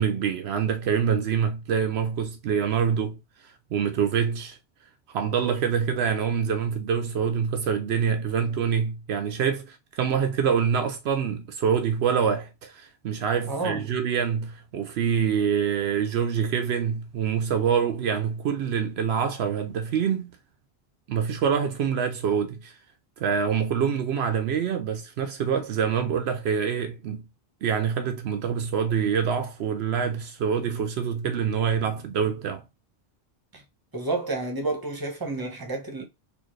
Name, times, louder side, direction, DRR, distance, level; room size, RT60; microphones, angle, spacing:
voice 1, 0.0-4.6 5.1-20.4 21.1-22.7 23.2-27.2 27.6-32.6, right 7 dB, 75° right, 0.8 m, -26 dB
voice 2, 13.5-13.9 33.5-33.6 33.9-36.0, right 3 dB, 20° right, 1.0 m, -30 dB
4.3 x 2.6 x 3.2 m
omnidirectional pair, 1.1 m